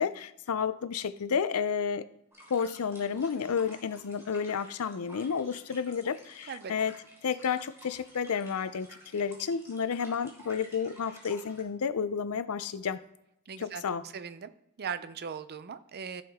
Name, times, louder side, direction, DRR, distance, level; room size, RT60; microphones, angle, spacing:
voice 1, 0.0-2.0 2.5-6.9 7.2-8.9 9.1-13.0 13.6-14.0, left 6 dB, 80° left, 14 dB, 0.5 m, -31 dB
sound 1, 2.3-11.6, right 1 dB, 15° right, 2.9 m, -53 dB
voice 2, 13.5-14.5 14.8-16.2, right 6 dB, 45° right, 13 dB, 0.5 m, -39 dB
14.5 x 5.0 x 3.6 m, 0.83 s
head